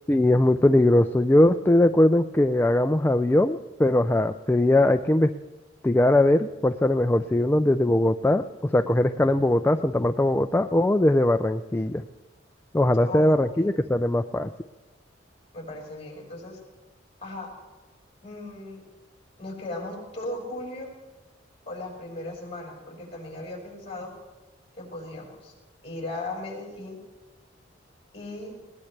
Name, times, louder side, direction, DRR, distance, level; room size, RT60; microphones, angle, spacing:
voice 1, 0.1-5.3 5.8-8.4 8.7-12.0 12.7-14.5, left 1 dB, 10° left, 8 dB, 0.4 m, -20 dB
voice 2, 13.0-13.7 15.5-16.6 17.2-17.5 18.2-18.8 19.4-20.9 21.7-24.1 24.7-25.5 25.8-27.0 28.1-28.6, left 2 dB, 30° left, -1 dB, 5.4 m, -37 dB
20.5 x 18.0 x 3.3 m, 1.2 s
head